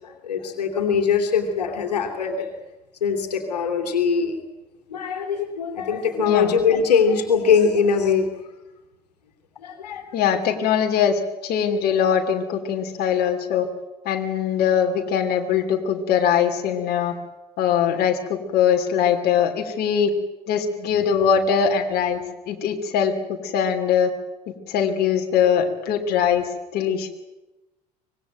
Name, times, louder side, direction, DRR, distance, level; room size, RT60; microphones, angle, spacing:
voice 1, 0.0-2.5 3.0-4.4 4.9-8.3 9.6-10.4, left 6 dB, 75° left, 5 dB, 3.0 m, -22 dB
voice 2, 10.1-13.7 14.0-17.1 17.6-20.1 20.5-22.2 22.5-23.1 23.4-24.1 24.7-26.4 26.7-27.1, left 8 dB, 50° left, 4 dB, 3.0 m, -21 dB
25.0 x 19.5 x 9.1 m, 1.0 s
figure-of-eight pair, 65°, 21 cm